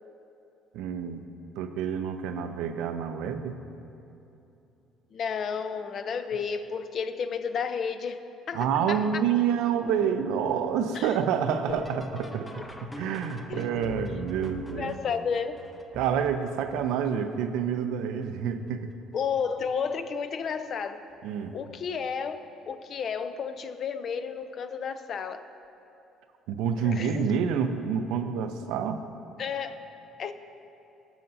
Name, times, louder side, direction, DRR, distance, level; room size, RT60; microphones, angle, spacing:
voice 1, 0.7-1.2 1.6-3.6 8.5-15.0 15.9-18.9 21.2-21.6 26.5-29.0, right 7 dB, 80° right, 8 dB, 0.5 m, -28 dB
voice 2, 5.1-9.0 10.9-11.1 13.5-13.7 14.8-15.6 19.1-21.0 21.5-25.4 26.8-27.2 29.4-29.9 30.2-30.3, left 6 dB, 55° left, 9 dB, 0.6 m, -32 dB
sound 1, 9.9-17.6 18.2-18.8 19.2-19.9 21.1-21.2 21.9-22.3 24.4-24.5 26.9-27.0, left 1 dB, 15° left, 0.8 m, -45 dB
18.5 x 6.6 x 2.7 m, 2.8 s
supercardioid pair, 85°, 0 cm